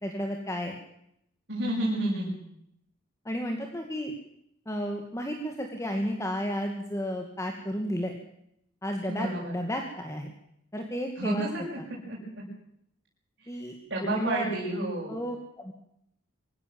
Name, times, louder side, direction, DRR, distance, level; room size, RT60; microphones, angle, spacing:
voice 1, 0.0-0.8 3.3-4.1 4.7-8.1 8.8-10.3 10.7-11.5 13.5-13.8 14.0-14.5 15.1-15.7, equal, 15° left, 3 dB, 2.3 m, -32 dB
voice 2, 1.5-2.3 9.1-9.5 11.2-11.8 12.1-12.2 13.4-13.6 13.9-15.2, right 1 dB, 60° right, -5 dB, 7.4 m, -30 dB
24.0 x 16.5 x 7.8 m, 0.76 s
head